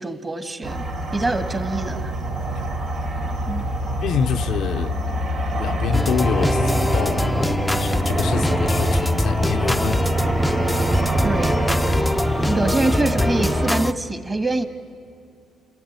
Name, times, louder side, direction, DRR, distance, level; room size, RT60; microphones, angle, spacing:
voice 1, 0.0-2.1 3.5-3.6 11.2-11.6 12.5-14.6, right 2 dB, 25° right, 1.8 m, -25 dB
sound 1, 0.6-13.7, right 1 dB, 75° right, 3.6 m, -26 dB
voice 2, 4.0-5.0 5.6-7.3 7.7-10.2, left 8 dB, 75° left, 0.6 m, -27 dB
sound 2, 5.9-13.9, left 1 dB, 5° left, 0.6 m, -22 dB
29.0 x 14.0 x 9.5 m
cardioid pair, 90°, 0 cm